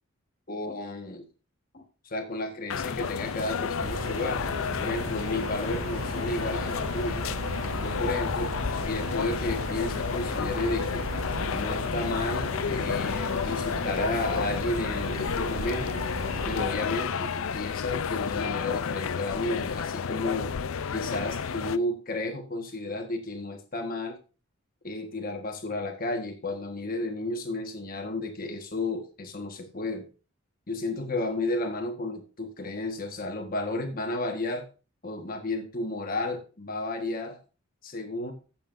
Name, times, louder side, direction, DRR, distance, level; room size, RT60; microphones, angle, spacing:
voice 1, 0.5-1.3 1.7-4.4 4.8-7.3 7.8-8.5 8.8-11.1 11.5-16.0 16.4-20.5 20.9-24.2 24.8-30.1 30.7-34.7 35.0-37.4 37.8-38.3, left 2 dB, 45° left, 4 dB, 1.4 m, -32 dB
sound 1, 2.7-21.8, left 6 dB, 80° left, 0.5 m, -31 dB
sound 2, 3.8-16.8, right 1 dB, 75° right, 1.9 m, -36 dB
15.0 x 7.2 x 2.6 m, 0.34 s
head